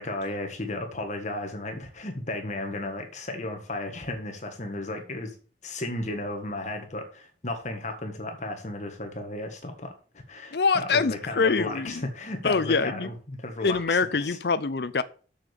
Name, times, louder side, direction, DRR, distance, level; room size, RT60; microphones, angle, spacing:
voice 1, 0.0-5.3 5.6-9.9 10.3-14.4, left 2 dB, 40° left, 1.6 m, -34 dB
voice 2, 10.5-12.1 12.4-13.1 13.6-15.0, left 4 dB, 65° left, 0.6 m, -24 dB
7.3 x 6.9 x 6.9 m
head